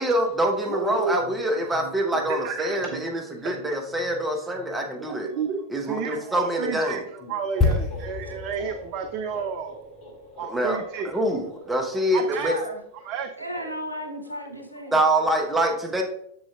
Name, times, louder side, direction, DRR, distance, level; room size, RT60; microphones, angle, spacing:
voice 1, 0.0-5.3 5.7-7.0 10.5-10.8 11.0-12.6 14.9-16.0, right 1 dB, 10° right, 2 dB, 1.0 m, -25 dB
voice 2, 0.7-1.3 1.7-3.7 4.3-4.4 5.0-9.8 10.4-11.1 12.1-12.5 13.1-13.3, right 6 dB, 40° right, 8 dB, 0.4 m, -32 dB
sound 1, 7.2-14.9, equal, 40° left, 2.0 m, -45 dB
sound 2, 7.6-11.3 11.5-11.7, left 4 dB, 20° left, 1.5 m, -29 dB
voice 3, 12.4-12.8 13.4-15.0, equal, 85° right, 4 dB, 0.9 m, -34 dB
6.9 x 6.8 x 2.3 m, 0.73 s
figure-of-eight pair, 90°, 0 cm